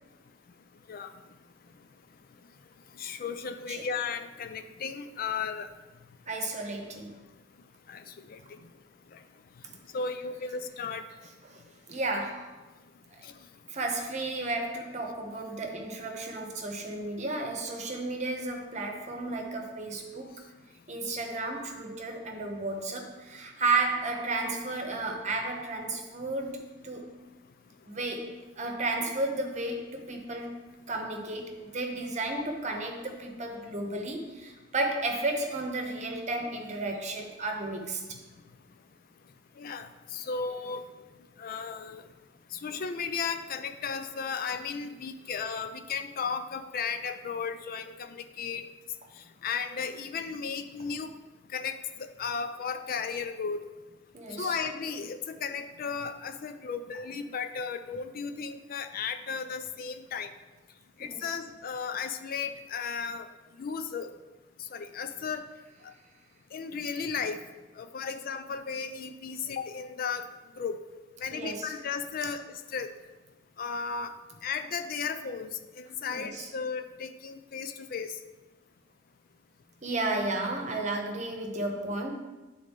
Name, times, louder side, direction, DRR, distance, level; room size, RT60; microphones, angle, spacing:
voice 1, 2.9-5.7 7.9-8.4 9.1-9.2 9.9-11.0 13.2-13.3 39.6-40.8 41.4-42.1 42.5-48.6 49.4-51.1 51.5-53.6 54.3-60.3 61.0-63.3 63.6-64.1 64.6-65.5 65.8-65.9 66.5-67.4 67.8-70.3 70.6-70.8 71.2-72.9 73.6-74.1 74.4-78.2, left 5 dB, 50° left, 9 dB, 0.4 m, -35 dB
voice 2, 6.3-7.1 11.5-11.6 11.9-12.5 13.1-13.2 13.7-20.3 20.9-26.6 26.8-27.1 27.9-38.0 54.1-54.5 61.0-61.4 71.3-71.7 76.1-76.5 79.8-82.1, right 2 dB, 40° right, 3 dB, 0.9 m, -33 dB
10.5 x 3.8 x 3.6 m, 1.1 s
head